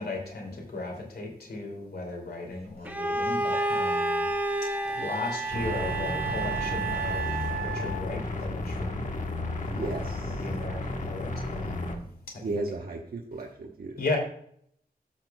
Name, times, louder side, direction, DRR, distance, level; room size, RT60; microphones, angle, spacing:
voice 1, 0.0-4.3 5.0-7.2 7.6-9.1 9.7-12.1 14.0-14.2, left 2 dB, 90° left, 1 dB, 2.7 m, -36 dB
Bowed string instrument, 2.8-7.7, equal, 10° right, 0.8 m, -31 dB
Wind instrument woodwind instrument, 2.8-2.9 3.5-8.1, right 8 dB, 40° right, 3.8 m, -35 dB
sound 1, 5.5-12.0, left 2 dB, 50° left, 1.3 m, -33 dB
voice 2, 9.7-10.5 12.4-13.9, right 2 dB, 70° right, 0 dB, 1.1 m, -35 dB
14.0 x 6.4 x 2.3 m, 0.66 s
wide cardioid pair, 105°, 16 cm